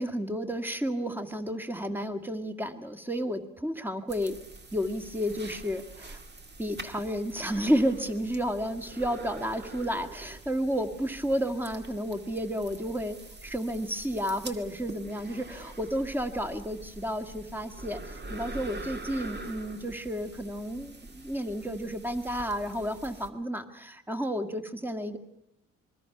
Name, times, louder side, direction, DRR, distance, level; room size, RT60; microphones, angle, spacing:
voice 1, 0.0-4.3 4.7-6.2 6.6-13.2 13.4-25.2, equal, 5° right, 8 dB, 1.9 m, -31 dB
sound 1, 4.1-23.3, right 2 dB, 35° right, 2.1 m, -45 dB
26.5 x 22.0 x 6.0 m, 0.83 s
cardioid pair, 90°, 30 cm